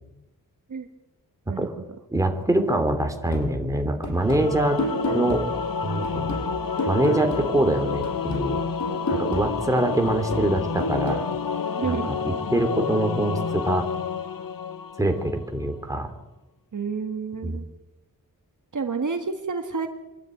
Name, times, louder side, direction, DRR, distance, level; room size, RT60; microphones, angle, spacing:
voice 1, 2.1-5.4 5.8-6.4 6.9-8.6 9.1-11.2 11.8-12.0 12.2-13.9 15.0-16.1 17.4-17.6, right 1 dB, 10° right, 5 dB, 2.9 m, -24 dB
sound 1, 3.3-7.8 8.0-11.3, equal, 55° left, 6.6 m, -32 dB
Singing / Musical instrument, 4.2-15.5, left 5 dB, 75° left, 1.1 m, -29 dB
voice 2, 11.7-12.1 16.7-17.7 18.7-19.9, right 5 dB, 60° right, 6 dB, 1.8 m, -29 dB
25.5 x 12.0 x 9.3 m, 1.0 s
wide cardioid pair, 115°, 34 cm